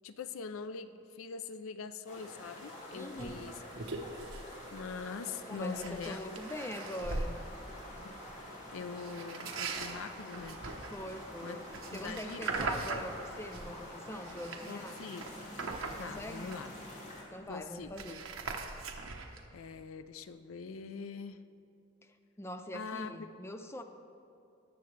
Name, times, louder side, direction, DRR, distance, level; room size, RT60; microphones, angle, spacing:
voice 1, 0.0-3.5 4.7-6.2 8.0-8.1 8.4-10.6 11.4-11.7 11.9-12.7 14.7-15.3 16.0-16.8 17.5-18.2 19.5-21.4 22.7-23.1, left 5 dB, 80° left, 11 dB, 0.4 m, -43 dB
sound 1, 2.1-17.2, left 1 dB, 35° left, 1.9 m, -47 dB
voice 2, 2.9-3.5 5.5-7.4 10.9-15.0 16.0-16.6 17.3-18.2 22.0-23.8, left 1 dB, 15° left, 7 dB, 0.4 m, -43 dB
sound 2, 3.2-3.3 3.7-4.5 4.7-5.0 5.5-7.3 9.0-13.8 14.1-16.8 17.2-17.3 17.5-19.5, right 3 dB, 80° right, 0.9 m, -40 dB
19.0 x 6.9 x 3.3 m, 2.7 s
head